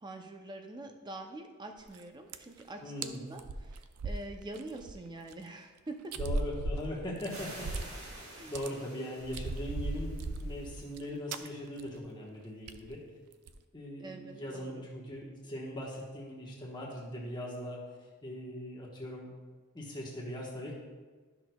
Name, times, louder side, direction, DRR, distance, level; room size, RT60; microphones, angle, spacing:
voice 1, 0.0-6.2 8.2-8.5 14.0-14.8, right 2 dB, 20° right, 5 dB, 0.5 m, -45 dB
sound 1, 1.8-2.0 2.3-2.6 3.0-3.1 3.4-4.9 5.3-5.4 6.1-8.1 8.4-8.7 9.2-11.0 11.3-11.5 11.8-12.0 12.2-12.3 12.7-12.9 13.3-13.6, right 2 dB, 90° right, 0.5 m, -37 dB
voice 2, 2.8-3.2 6.1-13.0 13.7-17.8 18.2-19.3 19.7-20.7, left 1 dB, 20° left, -4 dB, 1.2 m, -40 dB
sound 2, 7.2-10.9, right 1 dB, 65° right, 1.7 m, -49 dB
12.5 x 6.0 x 2.3 m, 1.4 s
head